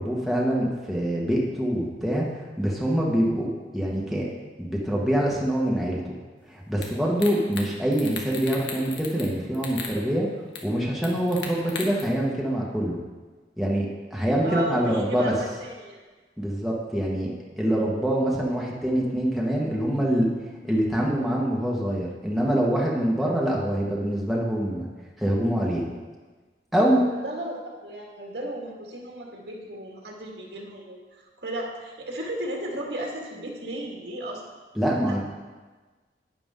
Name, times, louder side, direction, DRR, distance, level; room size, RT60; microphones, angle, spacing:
voice 1, 0.0-4.3 4.6-6.1 6.5-10.3 10.6-13.0 13.6-15.3 16.4-20.3 20.6-24.9 25.2-25.9 26.7-27.0 34.7-35.2, equal, ahead, -5 dB, 1.4 m, -25 dB
sound 1, 6.8-6.9 7.2-7.7 7.9-9.3 9.5-9.9 10.5-10.6 11.0-12.0, left 6 dB, 90° left, 1.6 m, -36 dB
voice 2, 14.4-16.0 27.1-34.4 35.1-35.2, right 1 dB, 70° right, -1 dB, 2.1 m, -35 dB
11.0 x 9.8 x 3.8 m, 1.3 s
head